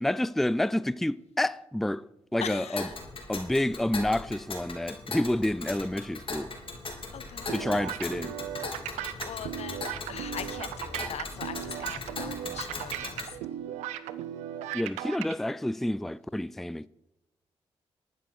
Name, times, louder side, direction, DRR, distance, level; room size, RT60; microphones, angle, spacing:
voice 1, 0.0-2.0 2.3-2.9 3.3-6.5 7.5-8.3 14.7-16.9, left 1 dB, ahead, 0.4 m, -29 dB
voice 2, 2.4-2.9 7.1-7.9 8.8-13.4, left 9 dB, 70° left, 0.9 m, -41 dB
Tick, 2.8-13.3, left 3 dB, 50° left, 3.6 m, -39 dB
sound 1, 7.5-15.3, right 12 dB, 90° right, 0.6 m, -37 dB
12.5 x 9.1 x 6.1 m
supercardioid pair, 45°, 11 cm